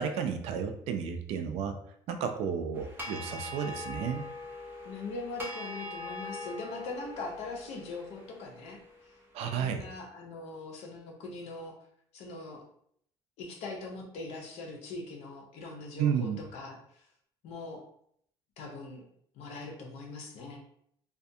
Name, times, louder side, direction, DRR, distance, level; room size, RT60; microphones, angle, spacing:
voice 1, 0.0-1.8 2.1-4.2 9.3-9.8 16.0-16.4, right 7 dB, 75° right, 7 dB, 0.4 m, -32 dB
sound 1, 2.7-9.1, left 2 dB, 20° right, 0.6 m, -42 dB
voice 2, 4.8-11.7 12.1-12.6 13.4-17.1 17.4-17.9 18.6-19.0 19.3-20.6, left 3 dB, 80° left, 0 dB, 0.7 m, -41 dB
2.4 x 2.2 x 2.6 m, 0.68 s
cardioid pair, 125°, 11 cm